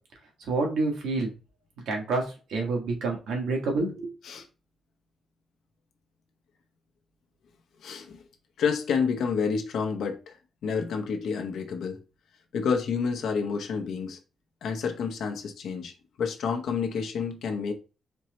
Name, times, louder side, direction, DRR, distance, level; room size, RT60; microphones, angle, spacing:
voice 1, 0.5-1.3 1.9-4.1, right 3 dB, 85° right, 1 dB, 1.5 m, -28 dB
voice 2, 7.8-8.2 8.6-10.3 10.6-12.0 12.5-14.2 14.6-15.9 16.2-17.7, left 6 dB, 70° left, 5 dB, 0.8 m, -29 dB
4.4 x 3.1 x 2.9 m, 0.32 s
wide cardioid pair, 165°, 0 cm